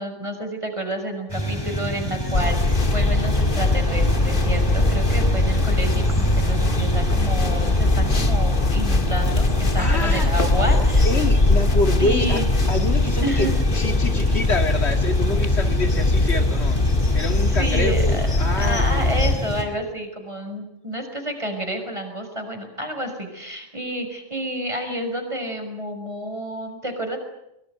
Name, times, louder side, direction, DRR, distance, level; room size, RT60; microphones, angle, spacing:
voice 1, 0.0-11.1 12.0-12.5 13.2-13.5 17.4-18.2 18.6-27.2, right 1 dB, 25° right, 4 dB, 6.5 m, -30 dB
sound 1, 1.3-19.6, equal, 20° left, 5.2 m, -28 dB
sound 2, 2.3-19.3, left 2 dB, 45° left, 2.1 m, -21 dB
voice 2, 9.8-10.5 11.0-12.4 12.7-13.5 13.7-16.8 17.1-19.3, left 2 dB, 60° left, 7 dB, 2.4 m, -27 dB
24.5 x 23.5 x 9.3 m, 0.83 s
omnidirectional pair, 1.2 m